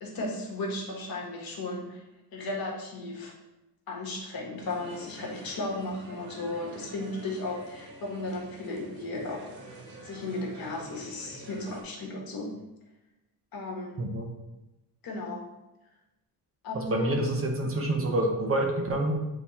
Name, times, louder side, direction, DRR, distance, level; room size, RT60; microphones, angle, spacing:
voice 1, 0.0-2.0 2.3-3.3 3.9-9.5 10.0-12.5 13.5-14.0 15.0-15.5 16.6-17.1, left 2 dB, 60° left, -1 dB, 1.5 m, -35 dB
sound 1, 4.6-11.8, right 2 dB, 65° right, 1.4 m, -47 dB
voice 2, 14.0-14.3 16.7-19.1, right 1 dB, 35° right, 2 dB, 0.8 m, -27 dB
8.3 x 3.0 x 4.1 m, 0.97 s
wide cardioid pair, 165°, 40 cm